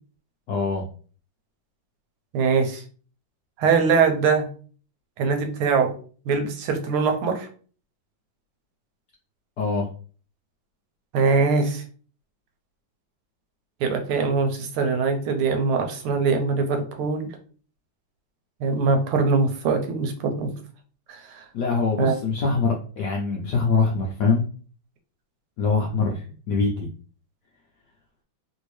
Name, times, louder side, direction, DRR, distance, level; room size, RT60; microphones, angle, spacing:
voice 1, 0.5-0.9 9.6-9.9 21.5-24.4 25.6-26.9, left 4 dB, 75° left, -1 dB, 0.9 m, -23 dB
voice 2, 2.3-2.8 3.6-4.5 5.2-5.9 6.3-7.5 11.1-11.8 13.8-17.3 18.6-20.5 21.1-21.4 22.0-22.1, right 4 dB, 85° right, 5 dB, 1.5 m, -22 dB
3.4 x 2.7 x 3.0 m, 0.41 s
omnidirectional pair, 2.4 m